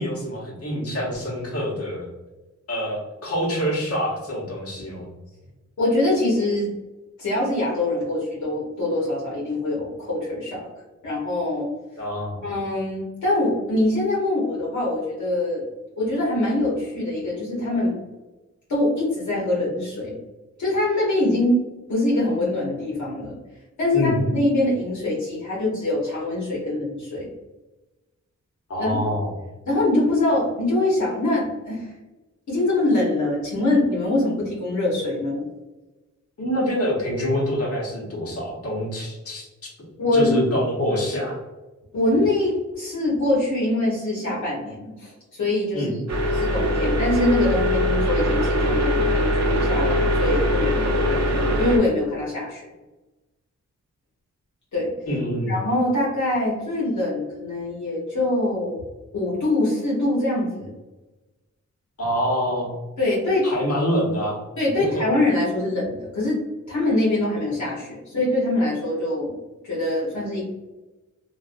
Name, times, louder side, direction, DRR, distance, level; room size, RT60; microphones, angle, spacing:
voice 1, 0.0-2.1 2.7-5.1 12.0-12.4 23.9-24.2 28.7-29.3 36.4-39.5 40.1-41.3 45.7-45.9 55.1-55.5 62.0-62.7 63.4-64.4 64.8-65.0, equal, 50° left, -4 dB, 1.1 m, -26 dB
voice 2, 5.8-6.7 7.2-10.7 11.0-11.7 12.4-15.6 16.0-17.9 18.7-20.1 20.6-21.6 21.9-23.4 23.8-27.3 28.8-29.0 29.7-31.9 32.5-35.4 40.0-40.5 41.9-45.9 46.3-52.6 54.7-54.9 55.5-58.8 59.1-60.7 63.0-63.5 64.6-66.4 66.7-69.3 69.6-70.4, left 2 dB, 75° left, -6 dB, 0.9 m, -23 dB
sound 1, 46.1-51.8, equal, 65° right, 0.7 m, -22 dB
2.5 x 2.3 x 2.4 m, 1.1 s
wide cardioid pair, 100°, 29 cm